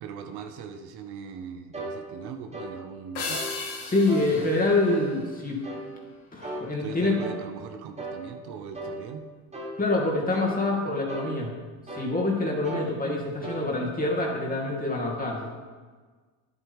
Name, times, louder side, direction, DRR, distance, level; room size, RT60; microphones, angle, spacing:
voice 1, 0.0-3.4 4.3-4.5 6.8-9.2, right 7 dB, 60° right, 6 dB, 0.9 m, -40 dB
sound 1, 1.7-2.0 2.5-2.8 3.3-3.5 4.1-4.3 4.9-5.1 5.6-5.9 6.4-6.7 7.2-7.4 8.0-8.2 8.7-9.0 9.5-9.8 10.3-10.6 11.1-11.3 11.9-12.1 12.6-12.9 13.4-13.6, right 1 dB, 15° right, 1.9 m, -36 dB
sound 2, 3.1-5.8, left 4 dB, 85° left, 2.0 m, -36 dB
voice 2, 3.8-5.6 6.3-7.2 9.8-11.5 11.9-15.5, left 2 dB, 20° left, -1 dB, 2.4 m, -26 dB
9.7 x 8.1 x 3.6 m, 1.5 s
supercardioid pair, 85°, 43 cm